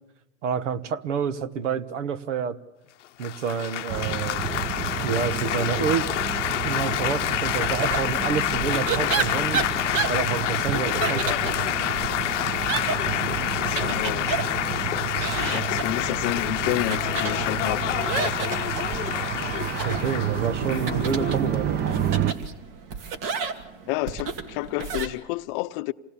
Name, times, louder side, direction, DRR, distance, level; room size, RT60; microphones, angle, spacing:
voice 1, 0.4-2.6 3.2-4.5 5.0-6.1 6.6-9.6 10.1-11.6 15.1-15.3 19.8-21.8, right 7 dB, 75° right, 1.3 m, -28 dB
Laughter / Applause / Chatter, 3.2-22.3, left 13 dB, 80° left, 0.8 m, -28 dB
sound 1, 3.9-22.3, right 9 dB, 30° right, 1.0 m, -31 dB
sound 2, 7.6-25.1, right 5 dB, 55° right, 2.3 m, -32 dB
voice 2, 13.3-14.3 15.5-17.9 23.9-25.9, left 19 dB, 50° left, 0.7 m, -30 dB
27.5 x 19.0 x 7.0 m
hypercardioid pair, 110°, 36 cm